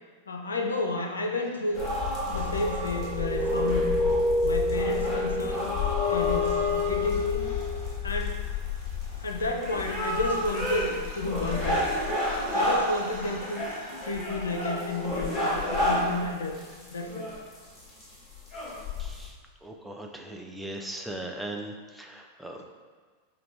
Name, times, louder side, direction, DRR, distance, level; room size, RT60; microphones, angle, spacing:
voice 1, 0.3-1.9 2.3-3.9 4.4-5.7 6.1-7.4 8.0-8.4 9.2-11.9 12.5-13.7 14.0-16.6 16.9-17.4, left 2 dB, 70° left, 3 dB, 0.4 m, -31 dB
sound 1, 1.7-19.3, left 2 dB, 20° left, 1.1 m, -31 dB
sound 2, 2.8-8.2 10.1-10.2 10.3-15.8, left 2 dB, 55° left, 1.0 m, -31 dB
voice 2, 19.0-22.7, right 1 dB, ahead, 1 dB, 0.4 m, -39 dB
4.9 x 2.2 x 3.2 m, 1.4 s
figure-of-eight pair, 90°, 0 cm